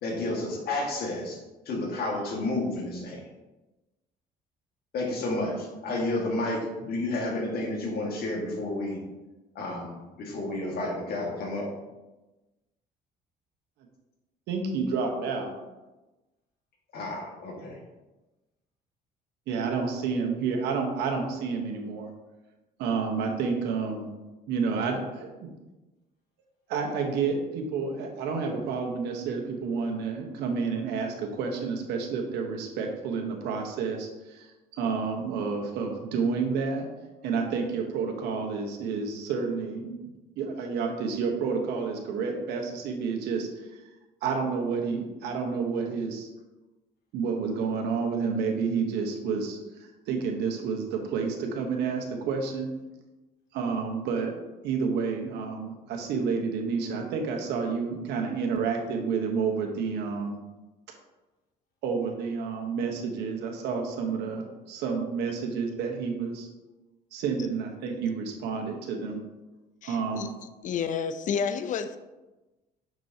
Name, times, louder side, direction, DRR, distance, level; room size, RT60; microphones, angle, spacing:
voice 1, 0.0-1.4 1.7-3.2 4.9-9.0 9.6-11.7 16.9-17.8, left 2 dB, 65° left, -1 dB, 1.8 m, -31 dB
voice 2, 14.5-15.5 19.5-22.1 22.8-24.1 24.5-25.5 26.7-34.5 34.8-36.9 37.2-40.0 40.4-43.8 44.2-46.3 47.1-52.7 53.5-54.3 54.6-60.4 61.8-66.5 67.1-69.2 69.8-70.4, right 5 dB, 85° right, 2 dB, 1.1 m, -30 dB
voice 3, 69.8-70.3 70.6-72.0, left 6 dB, 50° left, 10 dB, 0.5 m, -30 dB
6.3 x 6.1 x 2.8 m, 1.1 s
cardioid pair, 110°, 17 cm